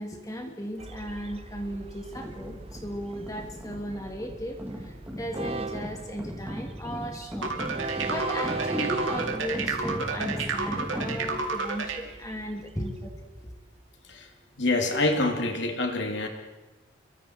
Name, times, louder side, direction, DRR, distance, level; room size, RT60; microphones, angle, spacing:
voice 1, 0.0-7.6 8.1-13.5, equal, 15° left, 2 dB, 2.9 m, -36 dB
Train, 0.8-13.8, right 3 dB, 30° right, 0.7 m, -39 dB
sound 1, 2.1-11.6, equal, 10° right, 2.5 m, -38 dB
sound 2, 7.4-12.0, right 4 dB, 85° right, 2.4 m, -31 dB
voice 2, 14.6-16.3, left 2 dB, 65° left, 4 dB, 2.8 m, -26 dB
30.0 x 24.0 x 4.6 m, 1.1 s
head